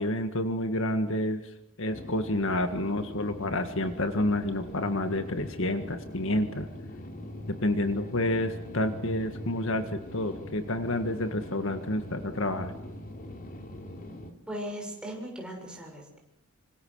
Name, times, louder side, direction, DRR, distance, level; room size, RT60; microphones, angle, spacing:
voice 1, 0.0-1.4 1.8-6.7 7.5-12.7, left 1 dB, 60° left, 8 dB, 1.8 m, -29 dB
sound 1, 1.9-14.3, left 1 dB, 40° left, 3.4 m, -42 dB
voice 2, 14.5-16.2, equal, 5° right, 0 dB, 6.6 m, -38 dB
26.5 x 26.0 x 6.5 m, 0.77 s
head